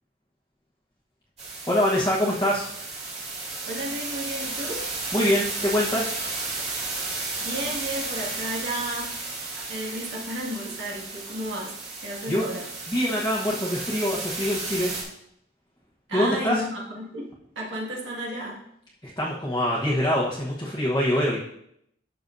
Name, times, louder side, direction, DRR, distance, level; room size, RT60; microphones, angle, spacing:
sound 1, 1.4-15.0, right 3 dB, 35° right, 2.3 m, -33 dB
voice 1, 1.7-2.7 5.1-6.1 12.3-12.5 12.9-14.9 16.1-16.6 19.0-21.4, left 1 dB, 20° left, -6 dB, 1.1 m, -24 dB
voice 2, 3.7-4.9 7.4-9.2 9.5-12.7 16.1-17.3 17.6-18.6, right 1 dB, 75° right, -4 dB, 2.0 m, -33 dB
12.0 x 6.1 x 2.7 m, 0.74 s
head